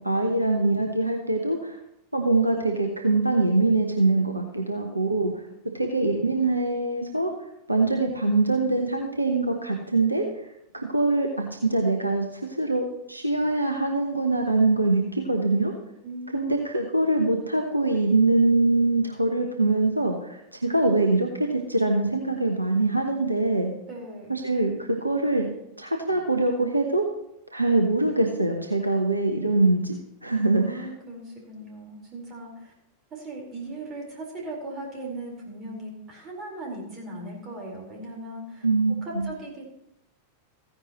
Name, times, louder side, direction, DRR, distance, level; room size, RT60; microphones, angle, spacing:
voice 1, 0.0-1.8 2.1-5.3 5.7-7.3 7.7-10.2 10.7-15.7 16.3-23.7 24.3-25.5 25.8-27.1 27.5-29.9 30.2-30.9 38.6-39.3, right 2 dB, 85° right, 3 dB, 1.0 m, -23 dB
voice 2, 16.0-16.5 23.9-24.4 30.6-32.7 33.1-38.7 39.0-39.7, right 1 dB, 30° right, -1 dB, 4.4 m, -38 dB
15.0 x 10.0 x 3.1 m, 0.82 s
figure-of-eight pair, 90°, 0 cm